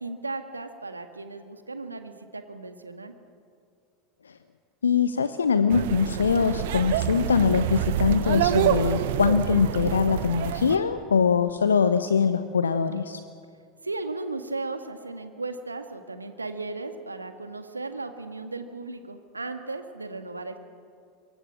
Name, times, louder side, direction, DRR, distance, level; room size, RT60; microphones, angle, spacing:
voice 1, 0.0-3.1 13.8-20.6, right 3 dB, 80° right, 8 dB, 1.8 m, -36 dB
voice 2, 4.8-13.2, left 6 dB, 75° left, 11 dB, 0.9 m, -23 dB
sound 1, 5.7-10.8, right 11 dB, 60° right, 1.3 m, -27 dB
24.5 x 23.0 x 7.4 m, 2.4 s
figure-of-eight pair, 80°, 0 cm